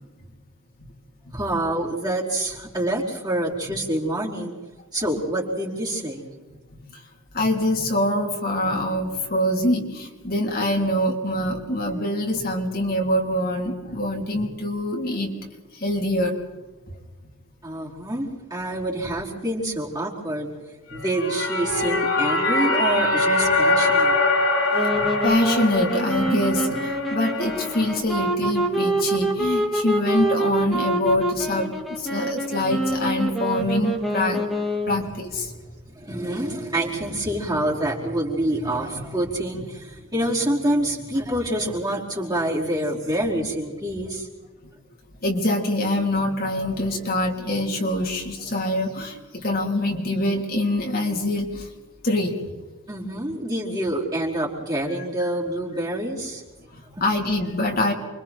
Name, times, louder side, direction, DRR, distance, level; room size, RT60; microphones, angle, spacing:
voice 1, 1.3-4.6 4.9-6.2 17.6-20.5 20.9-24.1 34.9-35.0 35.5-35.6 35.9-44.3 52.9-56.4 57.0-57.1, right 1 dB, 20° right, -3 dB, 4.7 m, -27 dB
voice 2, 7.3-15.3 15.7-16.4 20.9-21.0 24.9-34.4 34.9-35.5 45.2-51.7 52.0-52.4 56.7-57.9, left 1 dB, 45° left, 0 dB, 3.7 m, -24 dB
sound 1, 21.0-27.9, left 2 dB, 85° left, 7.3 m, -23 dB
sound 2, 24.7-35.1, right 1 dB, ahead, 3.0 m, -26 dB
29.5 x 24.5 x 4.5 m, 1.2 s
head